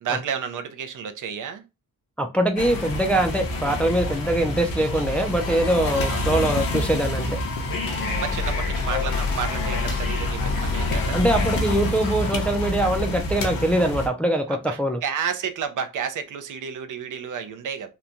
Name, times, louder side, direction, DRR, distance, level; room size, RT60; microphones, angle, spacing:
voice 1, 0.0-1.6 3.6-3.8 6.1-6.4 8.2-11.2 14.5-17.9, right 7 dB, 65° right, 0.5 m, -31 dB
voice 2, 2.2-7.4 11.1-15.0, right 1 dB, 5° left, 0.3 m, -23 dB
sound 1, 2.6-14.1, left 2 dB, 75° left, 0.8 m, -27 dB
sound 2, 5.4-8.6 8.8-12.2, left 6 dB, 45° left, 0.7 m, -41 dB
2.9 x 2.2 x 2.4 m
wide cardioid pair, 115°, 34 cm